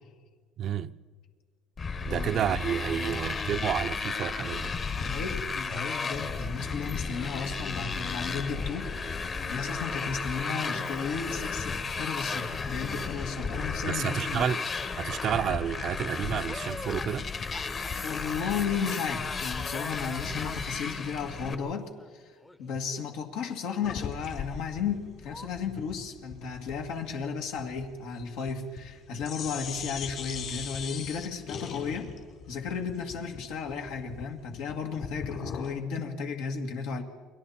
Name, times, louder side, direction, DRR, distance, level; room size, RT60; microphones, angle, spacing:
voice 1, 0.6-0.9 2.1-4.7 13.9-14.7 15.0-17.3 35.4-35.5, right 9 dB, 45° right, 0.6 m, -30 dB
Motorcycle, 1.8-21.5, left 4 dB, 35° left, 1.3 m, -34 dB
voice 2, 2.1-2.4 3.1-3.2 5.0-14.6 18.0-22.3 22.6-32.1 32.5-37.0, left 6 dB, 80° left, 2.2 m, -34 dB
sound 1, 14.1-14.7 15.1-23.2 23.4-24.1 24.3-24.6 24.9-25.0 25.2-25.5, left 1 dB, 10° left, 0.9 m, -48 dB
sound 2, 23.8-29.0 29.2-35.8, left 7 dB, 55° left, 3.7 m, -40 dB
29.5 x 22.0 x 4.4 m
cardioid pair, 125°, 0 cm